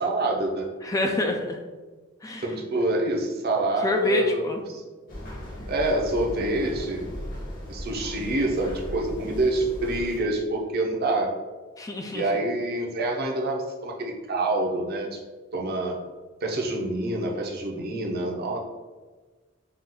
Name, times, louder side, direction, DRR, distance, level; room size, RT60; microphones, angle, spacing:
voice 1, 0.0-0.7 2.4-4.4 4.7-4.8 5.7-7.1 7.7-11.3 12.1-15.2 15.5-16.0 16.4-18.6, right 2 dB, 50° right, 0 dB, 0.7 m, -26 dB
voice 2, 0.8-1.6 2.2-2.5 3.8-4.6 11.8-12.3, left 2 dB, 15° left, 2 dB, 0.3 m, -26 dB
sound 1, 5.1-10.2, equal, 45° left, 1.1 m, -37 dB
4.4 x 2.4 x 3.8 m, 1.3 s
head